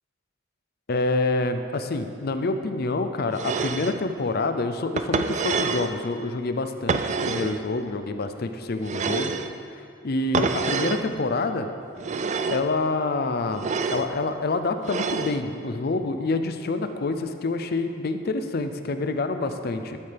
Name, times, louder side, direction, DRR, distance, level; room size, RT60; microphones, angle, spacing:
voice 1, 0.9-9.4 10.0-11.7 12.5-20.0, left 3 dB, 50° left, 9 dB, 0.5 m, -27 dB
sound 1, 3.3-4.0 5.0-5.9 6.9-7.6 8.8-9.5 10.3-11.0 12.0-12.7 13.5-14.1 14.8-15.4, right 5 dB, 35° right, 0.3 m, -27 dB
12.0 x 8.7 x 3.4 m, 2.5 s
head